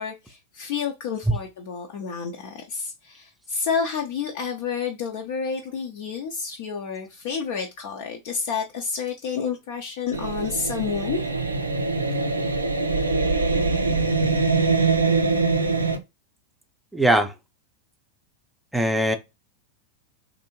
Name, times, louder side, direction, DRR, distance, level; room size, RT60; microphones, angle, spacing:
voice 1, 0.0-11.2, left 6 dB, 50° left, 0.5 m, -30 dB
sound 1, 10.1-16.0, right 3 dB, 80° right, 0.4 m, -23 dB
voice 2, 16.9-17.3 18.7-19.2, right 1 dB, 5° right, 0.5 m, -20 dB
3.4 x 2.6 x 2.9 m
figure-of-eight pair, 90°, 0 cm